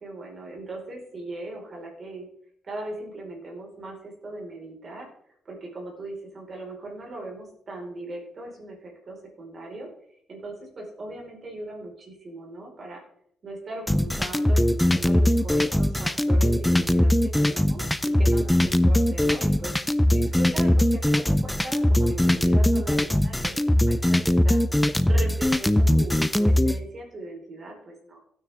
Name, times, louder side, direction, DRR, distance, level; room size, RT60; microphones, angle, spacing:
voice 1, 0.0-2.3 2.6-5.1 5.4-9.9 10.3-13.0 13.4-19.7 20.1-24.6 25.1-28.2, right 2 dB, 40° right, -1 dB, 4.9 m, -39 dB
sound 1, 13.9-26.8, left 1 dB, 5° left, 0.6 m, -21 dB
16.0 x 9.5 x 3.6 m, 0.70 s
cardioid pair, 120°, 0 cm